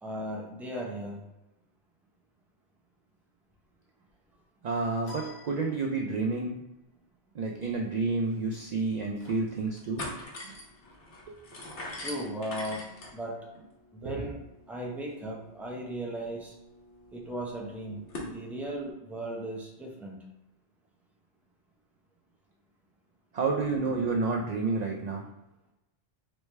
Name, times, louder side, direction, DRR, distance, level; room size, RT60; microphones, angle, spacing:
voice 1, 0.0-1.2 12.0-13.4 13.9-16.6 17.1-20.2, right 1 dB, ahead, -2 dB, 0.5 m, -37 dB
voice 2, 4.6-6.6 7.3-10.0 10.4-10.5 11.3-11.4 11.8-11.9 14.0-14.2 23.3-25.3, right 3 dB, 60° right, 1 dB, 0.4 m, -30 dB
sound 1, 5.0-6.4, equal, 50° left, 1.3 m, -47 dB
sound 2, 8.0-8.1 8.3-8.4 8.9-9.4 9.7-18.3, left 1 dB, 90° left, 1.3 m, -44 dB
4.6 x 3.1 x 3.2 m, 0.95 s
omnidirectional pair, 1.1 m